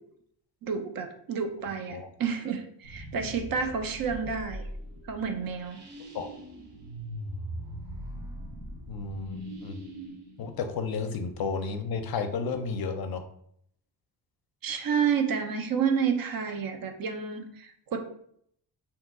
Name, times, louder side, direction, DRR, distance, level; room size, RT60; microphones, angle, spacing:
voice 1, 0.6-4.7 5.1-5.8 14.6-18.0, right 6 dB, 55° right, 6 dB, 0.5 m, -30 dB
sound 1, 2.8-11.5, equal, 70° right, 0.9 m, -41 dB
voice 2, 8.9-9.8 10.4-13.2, left 5 dB, 60° left, 7 dB, 0.5 m, -32 dB
2.8 x 2.2 x 3.5 m, 0.68 s
cardioid pair, 115°, 43 cm